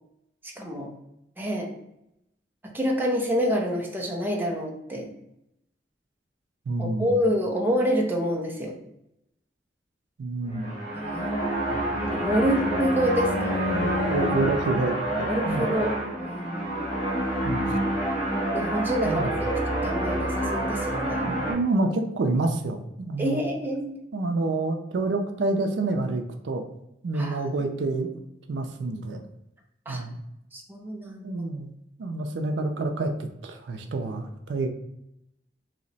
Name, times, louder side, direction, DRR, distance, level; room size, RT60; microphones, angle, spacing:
voice 1, 0.6-0.9 1.4-1.7 2.7-5.1 6.8-8.8 10.9-11.3 12.1-13.6 15.3-16.7 18.5-21.2 23.2-24.0 27.1-27.4 29.9-30.0 30.5-31.3, equal, 10° right, 0 dB, 0.5 m, -27 dB
voice 2, 6.7-7.2 10.2-10.7 11.7-11.9 13.6-15.7 17.4-17.7 19.0-19.3 21.2-23.4 24.1-26.6 27.0-28.1 28.5-29.2 29.9-30.2 31.2-31.7 32.0-34.7, right 2 dB, 90° right, 6 dB, 0.4 m, -28 dB
sound 1, 10.4-21.5, right 1 dB, 45° left, 1.1 m, -28 dB
Bowed string instrument, 11.6-14.8, left 3 dB, 75° left, 0.5 m, -32 dB
2.8 x 2.1 x 3.9 m, 0.82 s
head